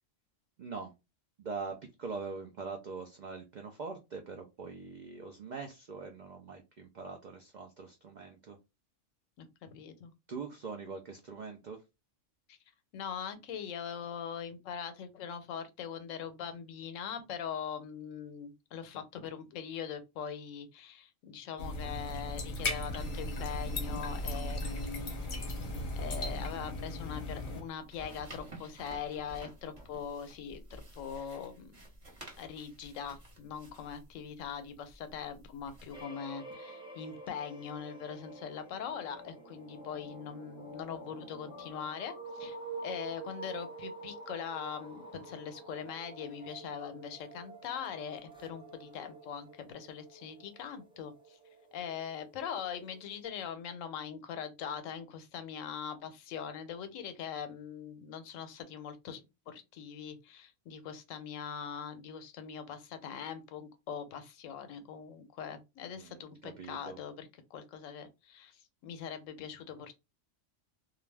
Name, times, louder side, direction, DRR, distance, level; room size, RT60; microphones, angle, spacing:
voice 1, 0.6-0.9 1.4-8.6 10.3-11.8 65.9-67.0, right 4 dB, 75° right, 0.4 m, -43 dB
voice 2, 9.4-10.1 12.5-12.6 12.9-25.1 26.0-31.8 32.4-42.6 42.8-51.4 51.7-69.9, left 7 dB, 85° left, 1.0 m, -42 dB
sound 1, 21.6-27.6, left 1 dB, 50° left, 0.7 m, -36 dB
sound 2, 27.5-36.0, right 1 dB, 30° right, 1.0 m, -52 dB
sound 3, 35.9-53.2, right 2 dB, 5° right, 0.5 m, -48 dB
2.4 x 2.2 x 3.2 m
omnidirectional pair, 1.3 m